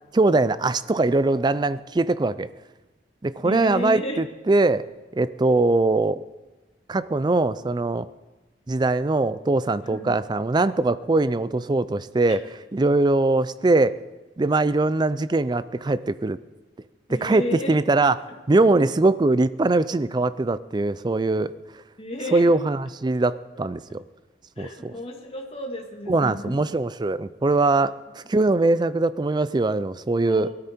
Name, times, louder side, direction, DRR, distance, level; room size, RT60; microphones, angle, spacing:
voice 1, 0.1-2.5 3.2-4.9 5.1-6.2 6.9-8.1 8.7-14.0 14.4-16.4 17.1-21.5 22.3-24.0 24.6-24.9 26.1-30.5, right 2 dB, 25° right, 15 dB, 0.4 m, -22 dB
voice 2, 3.4-4.2 9.9-10.1 12.3-12.4 17.1-17.8 18.7-18.8 22.0-22.4 24.6-26.6 30.3-30.5, left 1 dB, 35° left, 2 dB, 1.9 m, -32 dB
18.5 x 12.5 x 4.4 m, 1.2 s
head